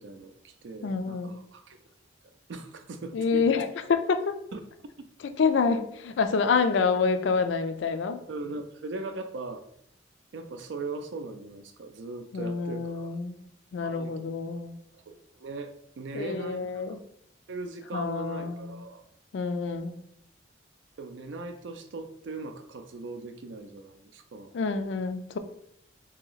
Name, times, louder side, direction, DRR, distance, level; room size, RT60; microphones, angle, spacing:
voice 1, 0.0-1.8 2.5-3.5 4.5-4.6 5.0-5.1 8.3-9.6 10.3-13.1 13.8-14.2 14.9-16.8 17.5-19.0 21.0-24.5, right 3 dB, 75° right, 8 dB, 0.4 m, -39 dB
voice 2, 0.8-1.4 3.1-4.3 5.4-8.2 12.3-13.4 13.7-14.8 16.1-17.0 17.9-18.8 19.3-20.0 24.5-25.4, left 5 dB, 75° left, 9 dB, 0.4 m, -27 dB
2.9 x 2.8 x 3.9 m, 0.73 s
head